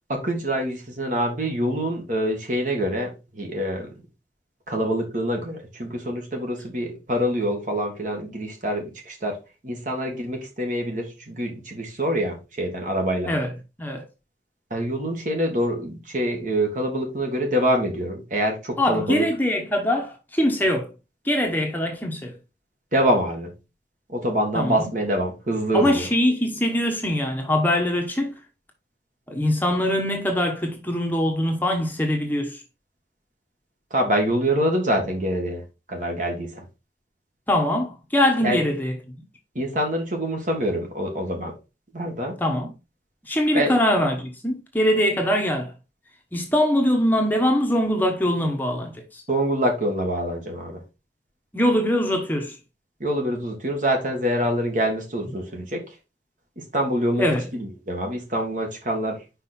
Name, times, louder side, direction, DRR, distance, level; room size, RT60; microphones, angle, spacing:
voice 1, 0.1-3.9 4.7-13.3 14.7-19.3 22.9-23.6 24.1-26.1 33.9-35.6 35.9-36.6 38.4-38.6 39.6-41.5 41.9-42.4 43.5-43.7 49.3-50.8 53.0-55.8 56.6-59.2, equal, 45° right, 1.9 m, -25 dB
voice 2, 18.8-20.9 21.2-22.3 24.5-24.9 25.7-28.3 29.3-32.6 37.5-39.0 42.4-42.7 43.3-45.7 46.3-49.2 51.5-52.6 57.2-57.4, left 1 dB, 10° left, 1.1 m, -22 dB
5.5 x 5.1 x 4.3 m
head